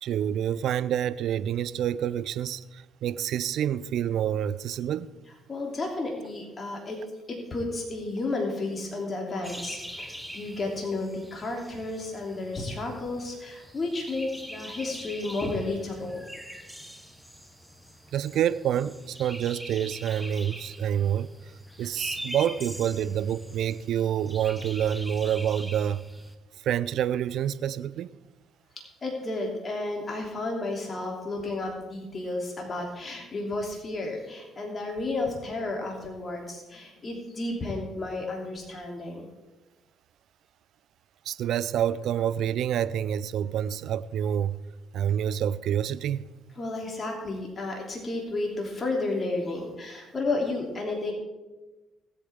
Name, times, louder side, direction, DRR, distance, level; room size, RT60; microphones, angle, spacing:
voice 1, 0.0-5.1 18.1-21.3 21.8-26.0 26.6-28.1 41.3-44.6 44.9-46.3, right 10 dB, 65° right, 0.4 m, -27 dB
voice 2, 5.5-7.0 7.3-16.2 29.0-39.3 46.6-51.1, left 2 dB, 35° left, 3.0 m, -32 dB
sound 1, 9.4-26.3, equal, ahead, 1.3 m, -43 dB
19.0 x 8.4 x 3.6 m
hypercardioid pair, 50°, 0 cm